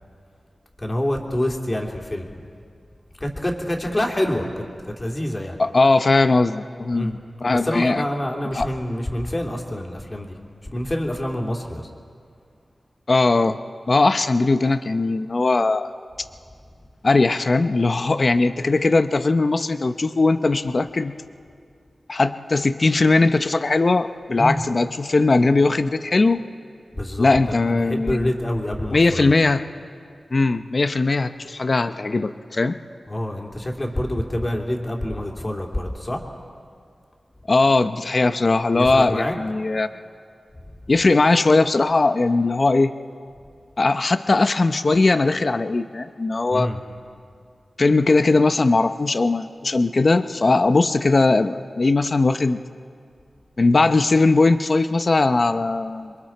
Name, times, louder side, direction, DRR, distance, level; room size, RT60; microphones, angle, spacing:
voice 1, 0.8-2.3 3.2-4.6 5.0-5.6 6.9-7.1 7.5-10.3 10.7-11.9 24.4-24.6 26.9-29.3 33.1-36.2 38.8-39.4 46.5-46.8, left 1 dB, 25° left, 1 dB, 2.8 m, -26 dB
voice 2, 5.6-8.0 8.5-8.7 13.1-13.6 13.9-15.9 17.0-21.1 22.1-26.4 27.2-28.3 28.9-29.6 30.3-32.8 37.5-39.9 40.9-42.9 43.8-46.7 47.8-52.6 53.6-56.1, left 3 dB, 50° left, 11 dB, 0.7 m, -19 dB
27.5 x 22.5 x 4.5 m, 2.3 s
wide cardioid pair, 60°, 0 cm